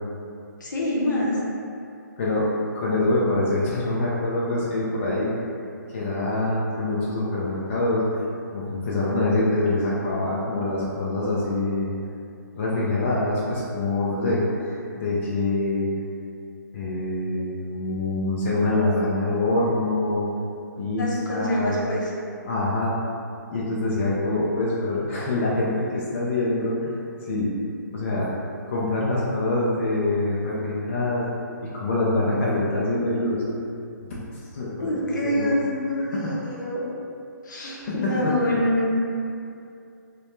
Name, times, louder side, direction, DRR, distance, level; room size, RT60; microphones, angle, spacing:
voice 1, 0.6-1.4 21.0-22.1 34.8-36.8 37.4-38.9, left 1 dB, 75° left, -5 dB, 0.7 m, -26 dB
voice 2, 2.2-5.3 5.9-8.0 8.5-11.9 12.6-15.9 16.7-20.3 20.8-21.8 22.4-22.9 23.5-27.0 27.3-27.5 27.9-28.3 28.7-31.3 31.7-33.5 34.5-35.6 36.0-36.3 37.6-37.9 38.2-38.6, left 2 dB, 40° left, -7 dB, 0.4 m, -25 dB
2.1 x 2.0 x 2.9 m, 2.5 s
hypercardioid pair, 160°, 10 cm